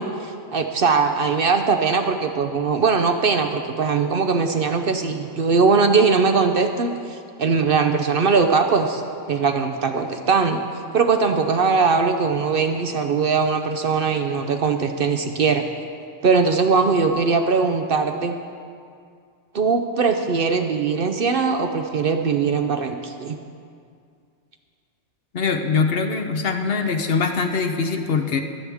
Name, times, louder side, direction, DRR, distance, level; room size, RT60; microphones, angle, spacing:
voice 1, 0.0-9.0 9.3-10.6 10.9-15.6 16.2-18.4 19.5-23.4, right 5 dB, 55° right, 6 dB, 0.8 m, -20 dB
voice 2, 25.3-28.4, left 5 dB, 55° left, 5 dB, 0.9 m, -22 dB
24.0 x 8.6 x 3.5 m, 2.3 s
omnidirectional pair, 1.3 m